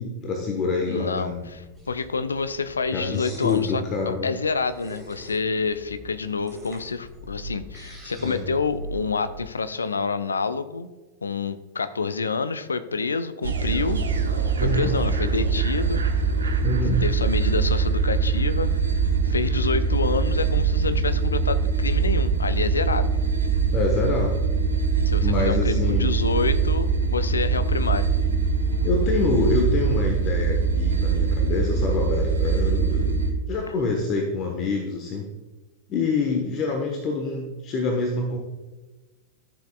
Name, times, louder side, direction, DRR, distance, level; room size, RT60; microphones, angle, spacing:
voice 1, 0.0-1.5 2.9-4.3 8.2-8.5 14.6-15.0 16.6-17.0 23.7-24.3 25.2-26.1 28.8-33.2 33.5-35.2 35.9-38.4, left 3 dB, 35° left, 2 dB, 1.2 m, -26 dB
voice 2, 0.9-1.3 1.9-10.9 11.2-14.0 14.6-16.0 17.0-18.7 19.2-23.1 25.0-28.1, left 4 dB, 75° left, 13 dB, 0.5 m, -27 dB
sound 1, 1.3-9.4, right 1 dB, ahead, 3.0 m, -42 dB
sound 2, 13.4-33.3, right 5 dB, 70° right, 1.1 m, -23 dB
13.5 x 7.0 x 2.4 m, 1.2 s
figure-of-eight pair, 90°, 0 cm